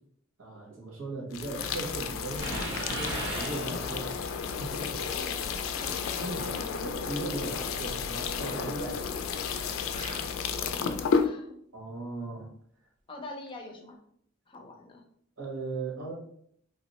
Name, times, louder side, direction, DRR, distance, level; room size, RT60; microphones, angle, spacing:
voice 1, 0.4-4.2 4.6-5.0 6.4-9.3 11.7-12.5 15.4-16.1, right 2 dB, 85° right, -2 dB, 1.2 m, -38 dB
sound 1, 1.3-11.3, left 6 dB, 85° left, 0.3 m, -32 dB
sound 2, 2.4-4.2, right 1 dB, 70° right, 0.8 m, -36 dB
sound 3, 3.0-3.4 6.1-6.6 9.9-10.5 13.5-13.6, right 2 dB, 40° right, 0.4 m, -42 dB
voice 2, 5.1-6.0 10.7-11.5 13.1-14.0 14.5-15.1, left 2 dB, 25° left, 3 dB, 0.5 m, -45 dB
2.7 x 2.0 x 4.0 m, 0.67 s
head